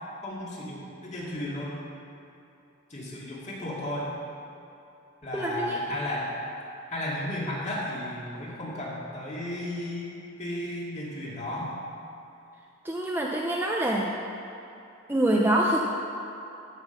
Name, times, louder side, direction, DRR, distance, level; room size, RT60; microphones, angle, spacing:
voice 1, 0.2-1.8 2.9-4.1 5.2-6.3 6.9-11.7, left 1 dB, 35° left, -5 dB, 2.3 m, -34 dB
voice 2, 5.3-5.8 12.8-14.1 15.1-15.8, right 1 dB, 10° right, -2 dB, 0.6 m, -25 dB
15.0 x 5.9 x 5.7 m, 2.8 s
head